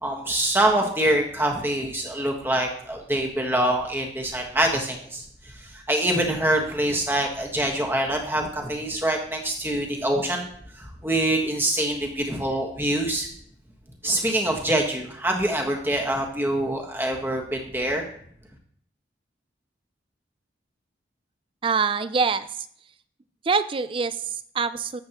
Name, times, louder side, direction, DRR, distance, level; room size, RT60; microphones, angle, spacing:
voice 1, 0.0-10.5 10.7-13.3 14.0-18.1, right 1 dB, 10° right, 1 dB, 1.4 m, -25 dB
voice 2, 21.6-22.7 23.4-25.0, right 5 dB, 30° right, 13 dB, 0.4 m, -25 dB
13.5 x 7.5 x 3.0 m, 0.64 s
head